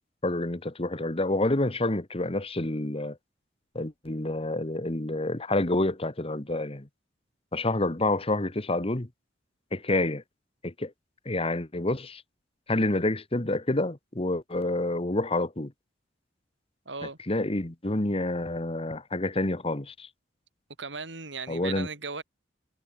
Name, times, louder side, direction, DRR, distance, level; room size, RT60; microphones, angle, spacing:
voice 1, 0.2-3.2 3.7-6.9 7.5-9.1 9.7-10.2 10.6-10.9 11.2-12.2 12.7-15.7 17.2-20.1 21.5-21.9, left 2 dB, 30° left, 1.5 m, -28 dB
voice 2, 16.9-17.2 20.8-22.2, right 4 dB, 75° right, 5.7 m, -37 dB
head